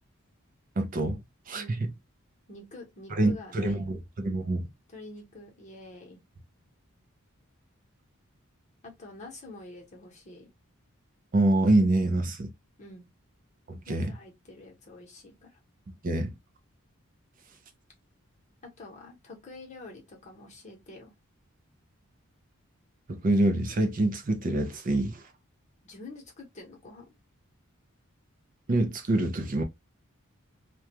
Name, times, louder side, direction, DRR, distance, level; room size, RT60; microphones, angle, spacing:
voice 1, 0.8-1.2 1.5-1.9 3.1-4.7 11.3-12.5 13.7-14.1 16.0-16.3 23.1-25.2 28.7-29.6, right 2 dB, 40° right, 0.4 m, -26 dB
voice 2, 1.5-1.9 2.5-4.0 4.9-6.2 8.8-10.5 12.8-13.1 13.9-15.6 18.6-21.1 25.8-27.1, left 2 dB, 35° left, 0.9 m, -47 dB
2.3 x 2.2 x 2.8 m
head